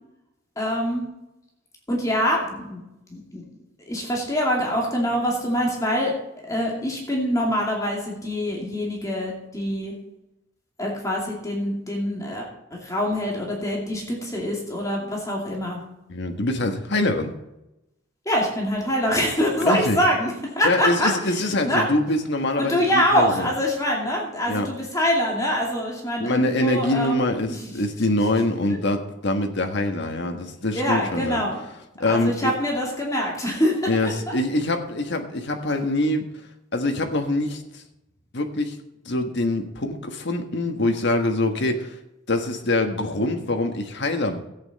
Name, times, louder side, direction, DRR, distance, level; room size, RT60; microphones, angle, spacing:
voice 1, 0.6-1.0 1.9-2.8 3.1-3.4 3.9-6.1 6.5-9.9 10.8-12.5 12.7-15.8 18.3-21.8 22.6-27.2 27.5-27.6 30.7-31.6 32.1-34.3, equal, 15° left, -2 dB, 2.5 m, -24 dB
voice 2, 16.1-17.3 19.6-20.0 20.6-22.8 23.1-23.5 24.4-24.7 26.2-31.4 32.0-32.5 33.9-36.3 36.7-37.8 38.3-38.8 39.0-42.0 42.3-44.4, left 2 dB, 60° left, 5 dB, 1.5 m, -24 dB
13.5 x 8.9 x 4.2 m, 0.90 s
head